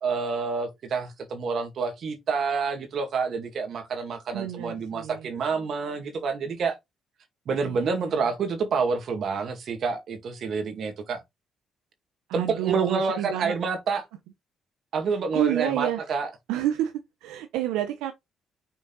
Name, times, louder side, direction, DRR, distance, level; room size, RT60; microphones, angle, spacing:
voice 1, 0.0-6.8 7.5-11.2 12.3-14.0 14.9-16.3, right 5 dB, 60° right, 2.0 m, -28 dB
voice 2, 4.3-5.3 7.6-8.1 12.3-13.6 15.3-16.0 16.5-16.9 17.2-18.1, right 12 dB, 85° right, 0.7 m, -29 dB
6.2 x 3.9 x 3.9 m
supercardioid pair, 65°, 0 cm